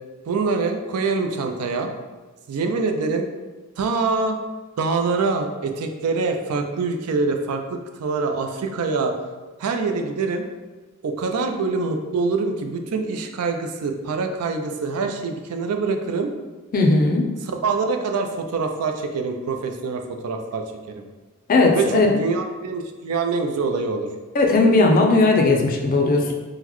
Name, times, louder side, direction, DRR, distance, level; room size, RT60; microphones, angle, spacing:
voice 1, 0.3-1.9 2.5-3.3 3.8-4.4 4.8-9.1 9.6-10.4 11.0-16.3 17.4-21.0 21.7-24.1, right 4 dB, 90° right, 5 dB, 0.4 m, -25 dB
voice 2, 16.7-17.2 21.5-22.1 24.3-26.3, left 3 dB, 40° left, 1 dB, 0.4 m, -17 dB
3.8 x 2.1 x 3.0 m, 1.2 s
head